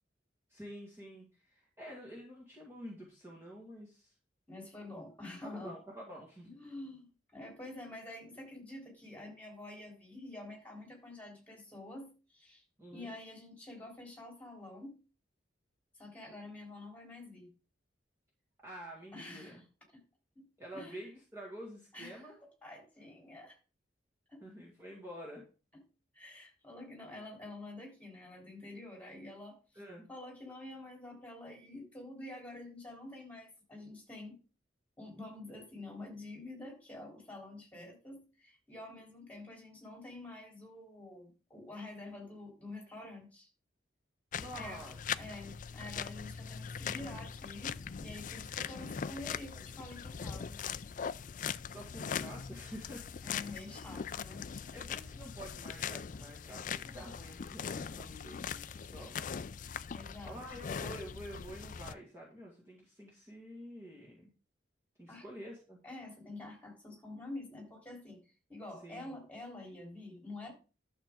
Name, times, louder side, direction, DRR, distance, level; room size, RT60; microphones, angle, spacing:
voice 1, 0.5-4.1 5.4-6.5 12.8-13.1 18.6-19.6 20.6-22.4 24.4-25.4 29.7-30.1 44.4-45.0 51.7-53.1 54.7-59.1 60.3-64.3 65.0-65.8 68.8-69.2, equal, 15° right, -4 dB, 2.0 m, -48 dB
voice 2, 4.5-5.7 6.4-12.6 12.9-15.0 15.9-17.5 19.1-19.6 19.9-20.0 20.4-20.5 20.7-21.1 21.9-23.6 24.3-24.4 25.7-25.8 26.1-29.8 30.1-34.4 35.0-43.5 44.5-44.9 45.2-50.6 50.9-51.1 53.2-54.4 59.9-60.4 65.1-65.3 65.8-70.5, left 2 dB, 10° left, 0 dB, 3.6 m, -48 dB
sound 1, 44.3-61.9, left 7 dB, 45° left, 0.4 m, -41 dB
11.5 x 7.1 x 3.8 m, 0.34 s
head